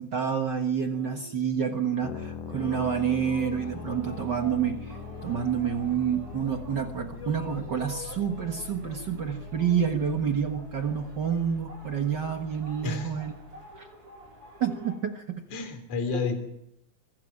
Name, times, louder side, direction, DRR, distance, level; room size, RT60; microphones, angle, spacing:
voice 1, 0.0-5.0 5.2-13.3 13.8-13.9 14.6-15.4 16.2-16.3, right 7 dB, 65° right, 5 dB, 1.1 m, -28 dB
sound 1, 0.8-2.2 2.5-6.9 7.1-11.0, left 3 dB, 10° left, 1.7 m, -46 dB
sound 2, 2.0-13.6, left 5 dB, 65° left, 3.6 m, -42 dB
sound 3, 3.6-15.0, equal, 25° right, 6.3 m, -50 dB
voice 2, 12.8-13.1 15.5-16.4, left 4 dB, 45° left, 6 dB, 4.1 m, -30 dB
25.0 x 13.5 x 8.9 m, 0.79 s
omnidirectional pair, 4.2 m